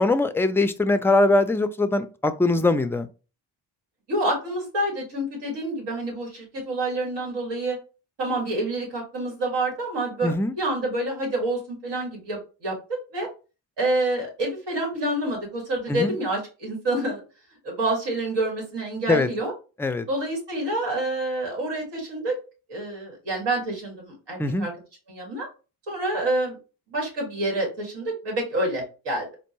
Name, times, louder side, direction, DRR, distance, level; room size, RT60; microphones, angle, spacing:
voice 1, 0.0-3.1 10.2-10.5 15.9-16.2 19.1-19.3 19.8-20.1 24.4-24.7, left 2 dB, 5° left, 9 dB, 0.3 m, -22 dB
voice 2, 4.1-7.8 8.2-12.8 13.1-13.3 13.8-17.2 17.6-19.5 20.1-22.4 22.7-24.7 25.1-25.5 25.9-26.6 26.9-29.3, right 1 dB, 80° right, -1 dB, 2.2 m, -27 dB
4.3 x 2.6 x 3.0 m, 0.32 s
cardioid pair, 90°, 41 cm